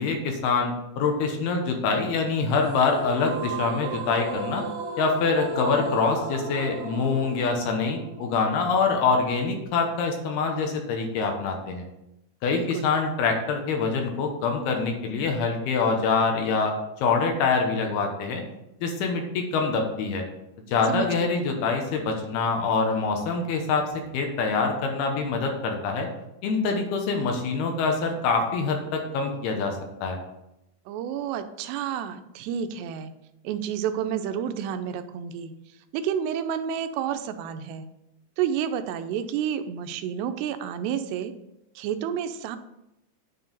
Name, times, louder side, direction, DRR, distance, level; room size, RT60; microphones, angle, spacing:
voice 1, 0.0-4.6 5.0-11.8 12.4-18.4 18.8-20.2 20.7-23.8 24.1-26.1 26.4-30.2, left 4 dB, 75° left, 3 dB, 2.9 m, -25 dB
sound 1, 2.6-9.6, right 3 dB, 70° right, 1.2 m, -35 dB
voice 2, 12.5-12.9 20.9-21.4 30.9-33.1 33.4-35.5 35.9-37.9 38.4-41.3 41.8-42.6, right 8 dB, 85° right, 9 dB, 2.7 m, -30 dB
9.6 x 4.7 x 5.3 m, 0.88 s
omnidirectional pair, 4.8 m